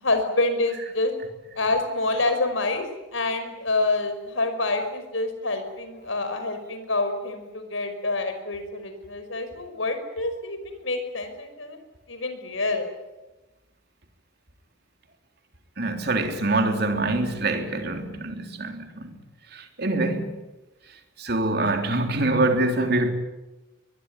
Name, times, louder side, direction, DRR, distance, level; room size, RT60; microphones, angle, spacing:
voice 1, 0.0-1.1 1.6-2.8 3.1-11.8 12.1-12.9, left 2 dB, 85° left, 5.6 m, -27 dB
voice 2, 15.8-19.2 19.5-20.3 21.2-23.1, right 2 dB, 55° right, 3.6 m, -25 dB
23.0 x 22.5 x 9.9 m
head